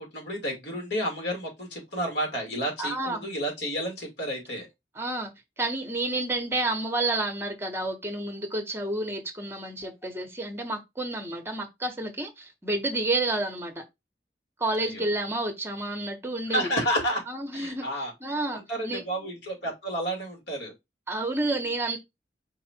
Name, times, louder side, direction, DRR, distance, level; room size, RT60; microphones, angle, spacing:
voice 1, 0.0-4.7 14.8-15.0 16.5-17.2 17.5-18.1 18.5-20.7, equal, 80° left, 2.2 m, -31 dB
voice 2, 2.8-3.3 5.0-5.3 5.6-13.8 14.6-16.7 17.3-17.8 18.2-19.0 21.1-22.0, right 2 dB, 15° right, 0.9 m, -30 dB
4.7 x 2.4 x 4.3 m
head